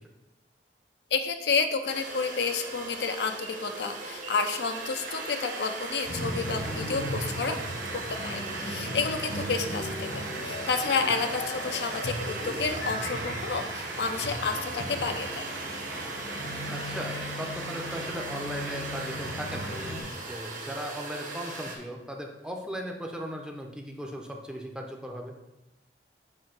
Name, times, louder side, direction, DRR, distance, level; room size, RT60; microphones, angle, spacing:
voice 1, 1.1-7.7 7.9-15.5, left 4 dB, 65° left, 6 dB, 0.5 m, -30 dB
sound 1, 1.9-21.8, right 2 dB, 45° right, 1.1 m, -39 dB
sound 2, 5.1-19.9, right 4 dB, 75° right, 0.8 m, -41 dB
sound 3, 6.0-20.0, left 1 dB, 90° left, 1.6 m, -37 dB
voice 2, 16.6-19.7 20.3-25.3, equal, 5° right, 2 dB, 0.7 m, -37 dB
7.4 x 2.8 x 5.9 m, 0.95 s
head